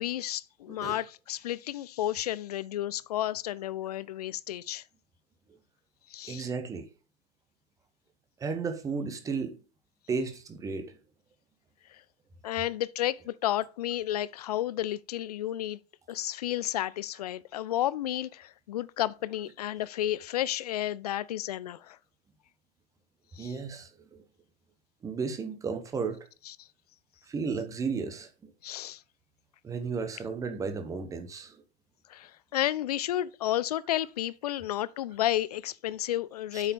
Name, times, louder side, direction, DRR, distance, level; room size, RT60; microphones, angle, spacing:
voice 1, 0.0-4.8 6.1-6.5 11.9-12.0 12.4-15.8 16.1-22.0 23.4-23.5 26.5-26.7 28.6-29.0 32.1-36.7, left 13 dB, 40° left, 0.4 m, -32 dB
voice 2, 0.7-1.0 6.3-6.9 8.4-9.6 10.1-11.0 23.4-24.2 25.0-26.2 27.3-28.5 29.6-31.6 36.5-36.7, right 5 dB, 10° right, 1.0 m, -34 dB
8.1 x 5.6 x 5.2 m
figure-of-eight pair, 110°, 33 cm